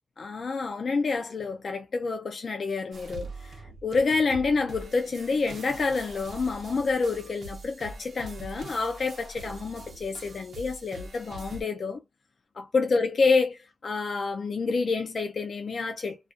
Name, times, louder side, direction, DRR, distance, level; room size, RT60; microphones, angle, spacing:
voice 1, 0.2-3.6 3.8-12.0 12.6-16.3, left 4 dB, 65° left, 0.4 m, -28 dB
sound 1, 2.9-11.6, right 2 dB, 80° right, 0.7 m, -43 dB
2.3 x 2.2 x 2.4 m
wide cardioid pair, 115°, 0 cm